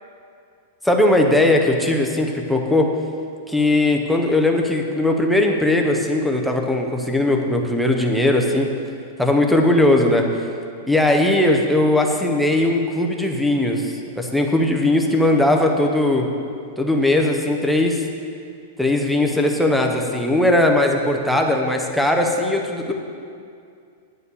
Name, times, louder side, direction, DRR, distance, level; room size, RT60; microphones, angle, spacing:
voice 1, 0.8-2.9 3.5-8.7 9.2-10.3 10.9-16.3 16.8-18.0 18.8-22.9, left 1 dB, ahead, 1 dB, 0.7 m, -19 dB
10.0 x 7.0 x 6.9 m, 2.3 s
supercardioid pair, 180°, 0 cm